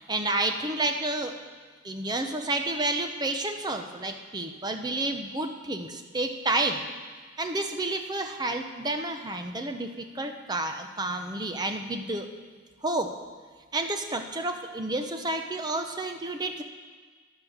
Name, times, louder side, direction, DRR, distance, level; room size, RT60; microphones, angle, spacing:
voice 1, 0.0-1.4 1.8-6.8 7.4-12.3 12.8-13.2 13.7-16.6, right 2 dB, 20° right, 5 dB, 0.8 m, -30 dB
14.0 x 10.5 x 6.5 m, 1.5 s
head